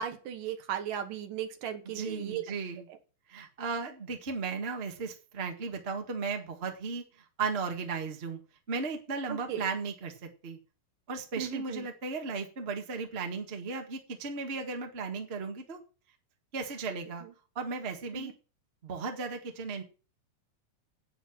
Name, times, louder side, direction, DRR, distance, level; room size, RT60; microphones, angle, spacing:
voice 1, 0.0-2.4 9.3-9.6 11.4-11.9 17.2-17.3 18.1-18.3, right 9 dB, 70° right, 7 dB, 2.9 m, -36 dB
voice 2, 1.8-2.9 3.3-7.0 7.4-8.4 8.7-10.6 11.1-15.8 16.5-17.2 17.5-18.3 18.8-19.8, right 4 dB, 30° right, 3 dB, 1.1 m, -35 dB
9.8 x 9.1 x 6.0 m, 0.34 s
omnidirectional pair, 4.2 m